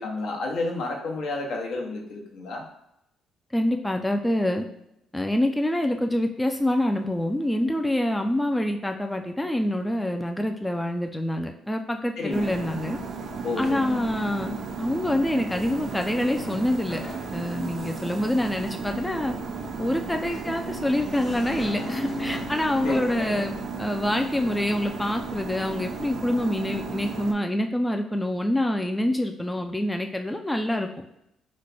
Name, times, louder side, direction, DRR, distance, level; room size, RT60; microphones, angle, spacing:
voice 1, 0.0-2.6 12.2-12.5 13.4-14.0 22.8-23.4, left 2 dB, 75° left, 1 dB, 0.8 m, -31 dB
voice 2, 3.5-4.6 5.1-13.0 13.6-17.0 17.3-19.3 19.8-30.9, left 1 dB, 10° left, 4 dB, 0.3 m, -26 dB
sound 1, 12.3-27.3, right 4 dB, 65° right, 0.5 m, -35 dB
sound 2, 15.5-23.5, left 2 dB, 40° left, 0.7 m, -40 dB
3.2 x 2.2 x 4.0 m, 0.82 s
supercardioid pair, 70°, 0 cm